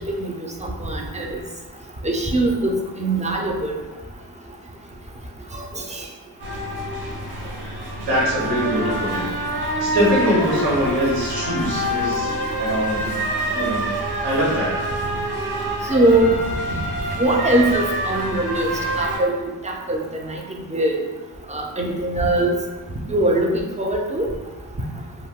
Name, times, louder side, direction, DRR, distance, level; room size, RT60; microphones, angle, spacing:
voice 1, 0.6-1.4 2.0-3.8 5.5-6.0 12.3-12.4 15.9-16.4 17.2-18.7 19.0-19.3 19.6-20.0 20.3-20.4 20.7-21.0 21.5-22.5 23.1-24.2, right 1 dB, 20° right, 0 dB, 0.4 m, -21 dB
sound 1, 6.4-19.2, right 1 dB, 65° right, 0.7 m, -26 dB
voice 2, 8.1-9.2 9.8-13.0 13.5-13.9 14.2-14.7, equal, 90° right, -6 dB, 1.0 m, -22 dB
2.2 x 2.1 x 3.5 m, 1.2 s
cardioid pair, 70°, 42 cm